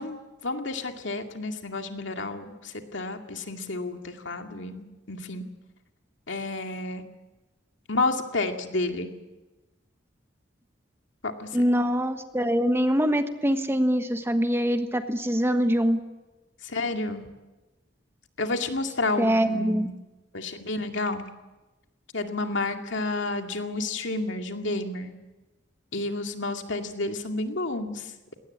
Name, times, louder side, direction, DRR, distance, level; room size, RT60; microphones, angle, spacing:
voice 1, 0.0-5.4 6.3-7.0 7.9-9.1 11.2-11.6 16.6-17.3 18.4-20.0 20.3-21.3 22.1-25.1 25.9-28.3, left 2 dB, 75° left, 5 dB, 2.3 m, -30 dB
voice 2, 11.5-16.0 19.2-19.9, equal, 15° right, 8 dB, 1.3 m, -24 dB
20.5 x 18.0 x 9.8 m, 1.1 s
head